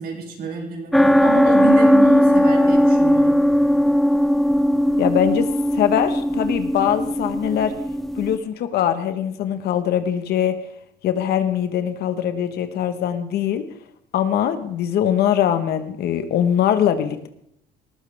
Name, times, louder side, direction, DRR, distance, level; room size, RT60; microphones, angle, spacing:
voice 1, 0.0-3.4, right 4 dB, 65° right, -1 dB, 6.7 m, -29 dB
sound 1, 0.9-8.4, equal, ahead, 0.9 m, -18 dB
voice 2, 5.0-5.5 5.7-7.7 8.2-10.6 11.0-13.6 14.1-17.3, left 10 dB, 70° left, 9 dB, 1.5 m, -22 dB
19.5 x 14.0 x 3.6 m, 0.73 s
cardioid pair, 110°, 17 cm